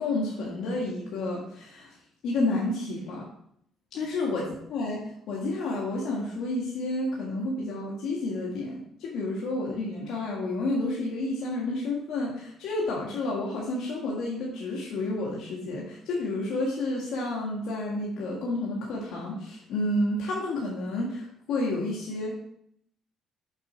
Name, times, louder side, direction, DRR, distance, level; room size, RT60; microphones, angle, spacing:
voice 1, 0.0-1.9 2.2-3.3 3.9-4.4 4.7-22.3, left 2 dB, 80° left, -4 dB, 1.7 m, -30 dB
6.6 x 4.1 x 6.1 m, 0.68 s
cardioid pair, 100°, 0 cm